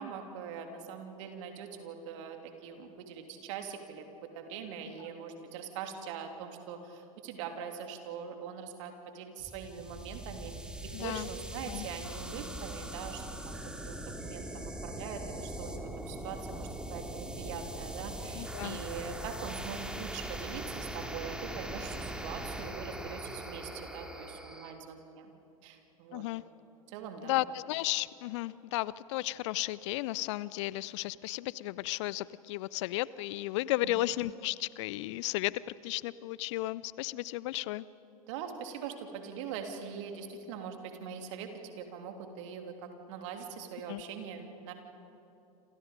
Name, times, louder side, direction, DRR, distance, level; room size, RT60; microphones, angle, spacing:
voice 1, 0.0-4.0 4.3-13.6 13.8-25.3 25.6-26.2 26.9-27.4 33.8-34.0 38.3-44.7, right 7 dB, 55° right, 5 dB, 3.1 m, -42 dB
sound 1, 9.4-24.7, right 1 dB, 5° right, 2.5 m, -41 dB
voice 2, 10.9-11.3 11.7-11.9 18.3-18.8 26.1-26.4 27.2-35.5 35.8-37.8 43.9-44.0, left 17 dB, 50° left, 20 dB, 0.6 m, -34 dB
28.0 x 27.5 x 5.2 m, 2.8 s
figure-of-eight pair, 85°, 19 cm